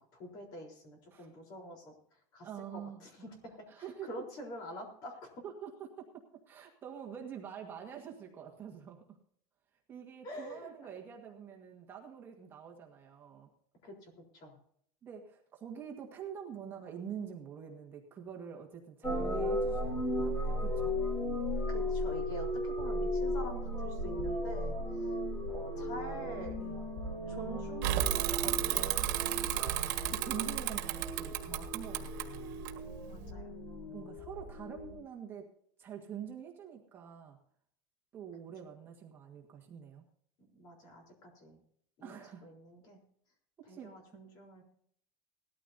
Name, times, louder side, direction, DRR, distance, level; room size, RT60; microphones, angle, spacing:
voice 1, 0.1-1.9 2.3-5.3 10.2-10.9 13.8-14.6 21.7-25.1 25.5-26.6 27.3-28.9 29.3-29.8 30.0-30.2 33.1-33.6 40.4-41.6 42.0-43.0 43.7-44.6, equal, 40° left, 1 dB, 3.9 m, -47 dB
voice 2, 2.4-3.0 3.7-4.2 5.4-9.2 9.9-13.5 15.0-20.9 23.2-23.3 26.6-26.8 28.4-29.0 30.1-32.5 33.9-35.5 35.8-37.4 38.1-40.0 42.0-42.5 43.7-43.9, right 8 dB, 20° right, 1 dB, 1.6 m, -46 dB
sound 1, 19.0-35.0, equal, 20° left, 3.4 m, -36 dB
Bicycle / Mechanisms, 27.8-33.3, right 14 dB, 65° right, 1.6 m, -33 dB
19.0 x 13.5 x 2.7 m, 0.66 s
cardioid pair, 175°, 10 cm